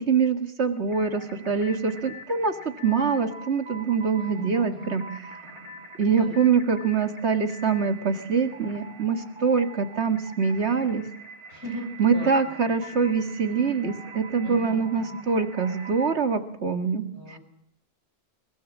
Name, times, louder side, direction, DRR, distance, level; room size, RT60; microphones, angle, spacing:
voice 1, 0.0-2.6 2.8-5.0 6.0-11.1 12.0-17.4, right 5 dB, 80° right, 7 dB, 2.2 m, -24 dB
sound 1, 0.9-16.1, right 2 dB, 25° right, 3.2 m, -44 dB
voice 2, 4.2-4.9 6.1-6.4 11.5-12.6 14.4-15.2 17.1-17.4, equal, 75° left, 3 dB, 6.5 m, -38 dB
22.5 x 21.0 x 7.3 m, 0.71 s
omnidirectional pair, 1.1 m